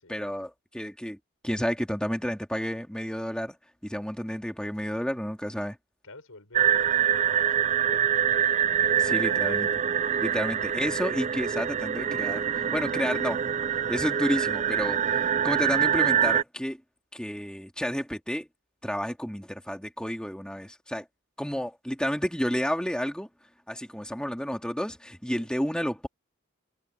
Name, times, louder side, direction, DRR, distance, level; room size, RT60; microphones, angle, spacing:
voice 1, 0.1-1.2 1.4-3.6 3.8-5.8 9.0-9.7 10.2-13.4 13.9-16.8 17.1-18.5 18.8-21.1 21.4-23.3 23.7-26.1, equal, 5° left, 2.6 m, -31 dB
voice 2, 6.0-8.2 8.9-9.6 25.3-25.5, left 2 dB, 90° left, 6.4 m, -45 dB
sound 1, 6.5-16.4, right 8 dB, 35° right, 0.4 m, -25 dB
head